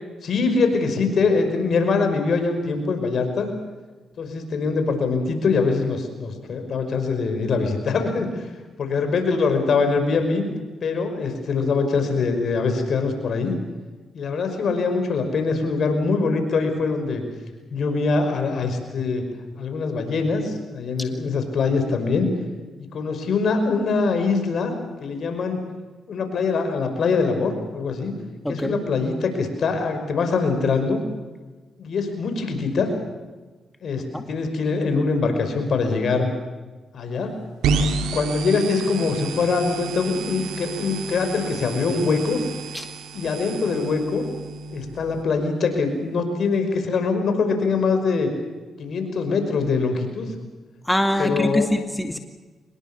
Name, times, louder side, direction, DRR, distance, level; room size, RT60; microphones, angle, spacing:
voice 1, 0.2-3.5 4.2-8.5 8.8-10.5 10.8-13.5 14.1-17.2 17.7-19.2 19.6-22.3 22.9-24.7 25.0-25.6 26.1-28.1 28.5-31.0 31.8-32.9 33.8-36.3 36.9-37.3 38.0-42.4 43.1-44.2 44.7-48.3 48.8-50.3 51.2-51.7, left 4 dB, 65° left, 6 dB, 5.5 m, -23 dB
voice 2, 28.4-28.8 34.1-34.2 42.7-42.9 50.9-52.2, left 1 dB, 5° left, 5 dB, 2.1 m, -23 dB
sound 1, 37.6-45.2, right 4 dB, 90° right, 2.3 m, -30 dB
24.5 x 21.5 x 7.0 m, 1.3 s
cardioid pair, 65°, 0 cm